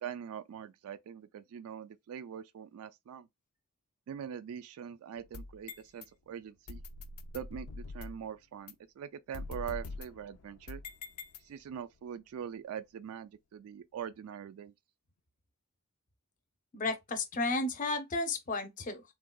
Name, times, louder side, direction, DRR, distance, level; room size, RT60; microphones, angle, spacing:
voice 1, 0.0-3.3 4.1-6.8 7.3-10.8 11.4-14.7, right 8 dB, 75° right, 0.3 m, -43 dB
sound 1, 5.2-6.1 6.7-8.3 8.7-8.8 9.3-11.8, left 3 dB, 80° left, 0.4 m, -44 dB
voice 2, 16.7-19.0, left 2 dB, 35° left, 0.6 m, -33 dB
3.5 x 2.2 x 2.3 m
head